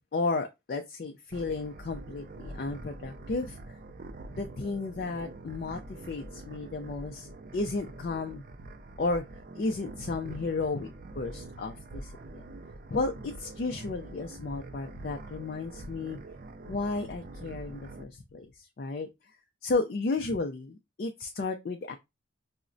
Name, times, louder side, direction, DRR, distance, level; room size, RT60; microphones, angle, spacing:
voice 1, 0.0-3.6 4.4-8.4 9.0-9.2 9.5-10.9 11.2-12.4 12.9-16.2 16.7-19.1 19.6-22.0, left 3 dB, 50° left, 0.4 m, -33 dB
sound 1, 1.3-18.0, right 2 dB, 45° right, 0.4 m, -45 dB
5.7 x 2.1 x 2.5 m
head